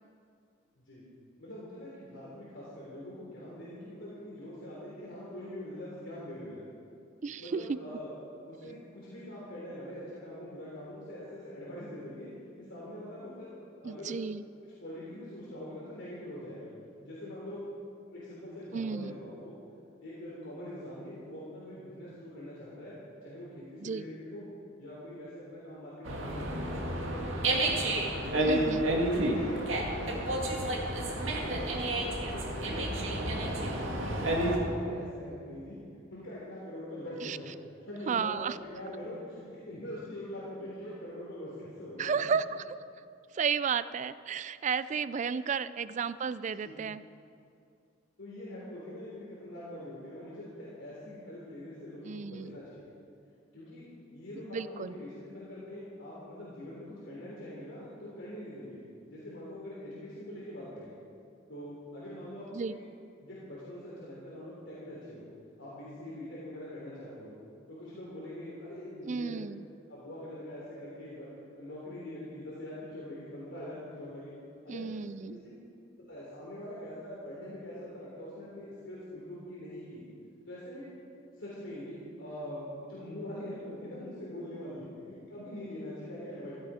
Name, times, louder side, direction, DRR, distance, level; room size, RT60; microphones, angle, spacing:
voice 1, 1.4-6.7 7.4-8.1 8.5-12.3 12.6-13.6 13.8-14.2 14.6-16.7 17.0-17.6 18.1-19.6 20.0-24.4 24.8-27.6 28.2-28.5 29.1-30.8 31.3-31.8 32.2-35.8 36.1-37.5 37.9-42.2 45.2-45.4 46.6-46.7 48.2-52.9 53.5-53.9 54.1-58.8 59.1-60.9 61.5-62.8 63.2-65.2 65.6-67.3 67.7-69.3 69.9-71.3 71.5-74.3 74.6-75.0 75.3-75.5 76.1-80.0 80.5-80.9 81.4-86.5, left 1 dB, 70° left, -7 dB, 3.4 m, -43 dB
voice 2, 7.2-7.8 13.8-14.4 18.7-19.2 23.8-24.0 28.4-28.8 37.2-37.4 38.1-38.6 42.0-42.8 43.3-47.0 52.0-52.6 54.4-54.9 62.5-62.7 69.1-69.6 74.7-75.4, right 6 dB, 40° right, 15 dB, 0.3 m, -33 dB
Dog, 26.0-34.6, right 1 dB, 85° right, 2.1 m, -30 dB
15.5 x 13.0 x 5.0 m, 2.4 s
head